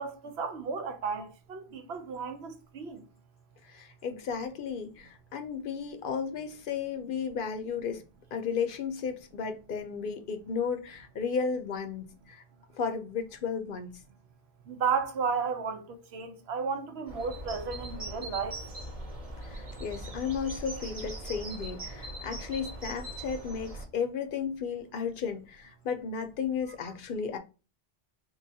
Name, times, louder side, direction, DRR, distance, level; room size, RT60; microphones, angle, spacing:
voice 1, 0.0-3.0 14.7-18.6, right 5 dB, 85° right, 0.9 m, -33 dB
voice 2, 3.6-8.0 8.3-12.4 12.8-14.0 19.4-27.4, left 6 dB, 65° left, 0.6 m, -34 dB
sound 1, 17.1-23.9, right 1 dB, 40° right, 0.9 m, -41 dB
3.8 x 2.8 x 2.6 m
omnidirectional pair, 1.0 m